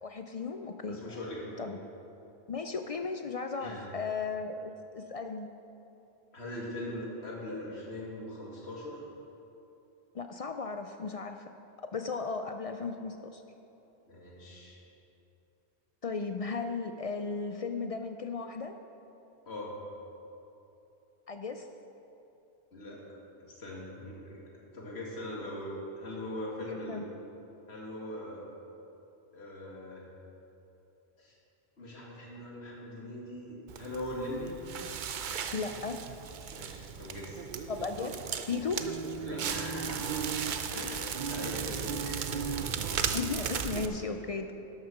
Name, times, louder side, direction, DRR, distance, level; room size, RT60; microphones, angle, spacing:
voice 1, 0.0-1.0 1.6-1.8 2.5-5.5 10.1-11.5 11.9-13.4 16.0-18.8 21.3-21.7 26.7-27.0 35.5-36.0 37.7-38.2 38.5-38.9 43.1-44.5, left 4 dB, 60° left, 6 dB, 0.4 m, -35 dB
voice 2, 0.9-1.6 3.6-3.9 6.3-9.0 14.1-14.8 19.5-19.8 22.7-27.1 27.7-28.5 29.3-30.1 31.2-31.3 31.8-34.5 36.5-37.4 38.8-38.9 39.2-40.2 40.7-42.8, left 1 dB, 75° left, -3 dB, 2.2 m, -41 dB
Crackle, 33.7-43.9, right 7 dB, 55° right, 0.6 m, -35 dB
12.5 x 6.5 x 5.8 m, 2.9 s
omnidirectional pair, 1.1 m